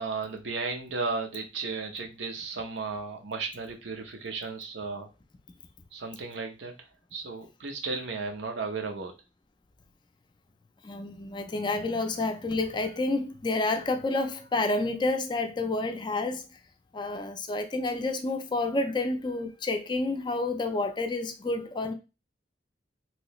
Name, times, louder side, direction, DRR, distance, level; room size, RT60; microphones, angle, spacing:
voice 1, 0.0-5.1 5.9-6.7 7.1-9.1, right 4 dB, 80° right, 0.7 m, -34 dB
voice 2, 10.8-16.5 16.9-21.9, left 2 dB, 25° left, 0.4 m, -29 dB
3.1 x 2.7 x 3.0 m
head